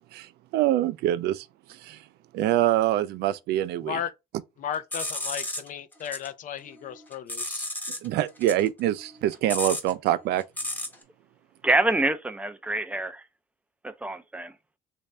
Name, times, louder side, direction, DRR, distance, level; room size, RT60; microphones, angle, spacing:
voice 1, 0.1-2.0 2.3-4.0 8.0-10.4, right 13 dB, 75° right, 0.4 m, -25 dB
voice 2, 3.8-4.1 4.6-7.7, left 9 dB, 50° left, 0.5 m, -35 dB
sound 1, 4.7-6.3 6.7-8.1 8.4-11.0, left 1 dB, 10° left, 0.8 m, -33 dB
voice 3, 11.6-13.2 13.8-14.5, right 2 dB, 10° right, 0.4 m, -26 dB
3.2 x 2.6 x 3.3 m
cardioid pair, 110°, 17 cm